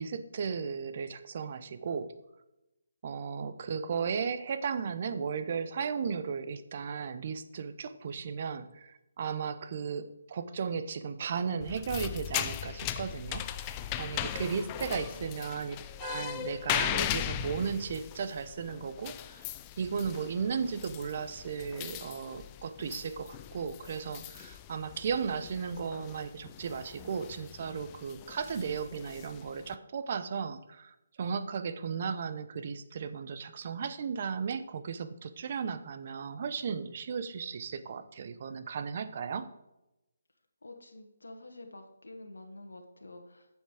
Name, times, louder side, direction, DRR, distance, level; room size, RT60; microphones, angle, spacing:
voice 1, 0.0-2.1 3.0-19.5 19.8-39.5, right 6 dB, 45° right, 11 dB, 0.8 m, -35 dB
sound 1, 11.6-29.7, left 12 dB, 20° left, 0.4 m, -39 dB
voice 2, 14.8-15.6 40.6-43.5, left 2 dB, 85° left, 3 dB, 1.4 m, -49 dB
9.3 x 7.2 x 4.9 m, 0.93 s
figure-of-eight pair, 155°, 0 cm